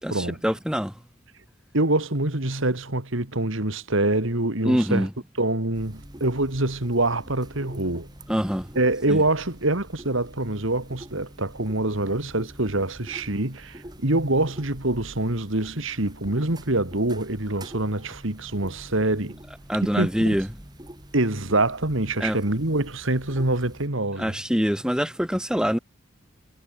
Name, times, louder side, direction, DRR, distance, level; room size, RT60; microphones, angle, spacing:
voice 1, 0.0-0.9 4.6-5.1 8.3-8.7 9.1-9.2 19.7-20.5 22.2-22.4 24.2-25.8, equal, 5° right, 2.0 m, -24 dB
voice 2, 1.7-5.1 5.4-8.1 8.7-19.4 19.8-20.4 21.1-24.4, right 2 dB, 65° right, 2.6 m, -25 dB
sound 1, 5.7-23.9, right 1 dB, 20° right, 3.5 m, -45 dB
head